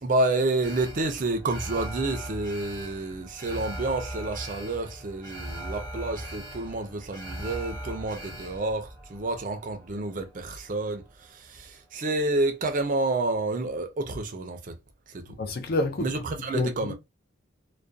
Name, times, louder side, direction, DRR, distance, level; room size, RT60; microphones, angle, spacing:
voice 1, 0.0-14.7 15.1-15.4 16.0-16.9, right 2 dB, 35° right, 0.4 m, -29 dB
Alarm, 0.6-10.9 11.2-11.3, right 1 dB, 10° left, 0.9 m, -39 dB
voice 2, 15.4-16.9, left 2 dB, 45° left, 0.4 m, -29 dB
2.3 x 2.2 x 2.6 m
head